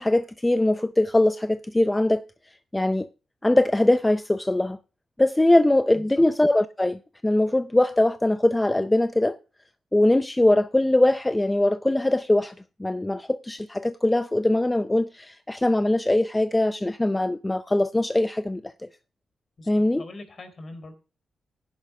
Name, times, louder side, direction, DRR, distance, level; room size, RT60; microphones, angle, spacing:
voice 1, 0.0-2.2 2.7-3.1 3.4-4.8 5.2-9.4 9.9-12.5 12.8-18.9 19.7-20.0, left 1 dB, 15° left, 0.5 m, -22 dB
voice 2, 5.9-6.2 19.6-19.7 19.9-20.9, left 2 dB, 45° left, 3.8 m, -42 dB
16.0 x 10.5 x 2.4 m
cardioid pair, 70°, 0 cm